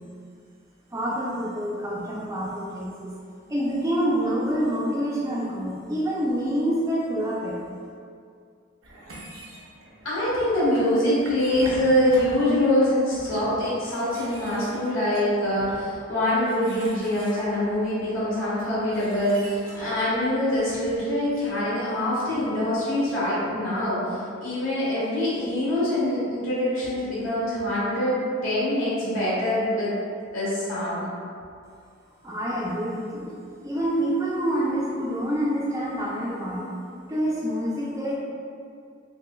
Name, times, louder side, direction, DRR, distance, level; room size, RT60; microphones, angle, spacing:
voice 1, 0.9-3.1 3.5-7.6 32.2-36.7 37.1-38.2, equal, 15° right, -6 dB, 0.4 m, -27 dB
sound 1, 8.8-21.5, right 1 dB, 80° right, 0.7 m, -44 dB
voice 2, 10.0-29.9 30.3-31.0, left 1 dB, 80° left, -10 dB, 1.4 m, -24 dB
6.0 x 2.1 x 2.2 m, 2.3 s
head